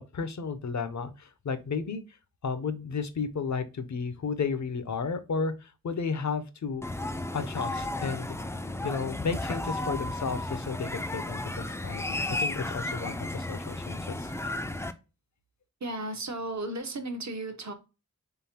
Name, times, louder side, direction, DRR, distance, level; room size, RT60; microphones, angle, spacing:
voice 1, 0.0-2.0 2.4-6.9 7.3-8.4 8.8-14.5, left 5 dB, 55° left, 0.6 m, -33 dB
sound 1, 6.8-14.9, left 1 dB, 10° left, 0.3 m, -34 dB
voice 2, 15.8-17.7, right 2 dB, 55° right, 0.7 m, -34 dB
3.8 x 3.5 x 2.8 m
wide cardioid pair, 70°, 34 cm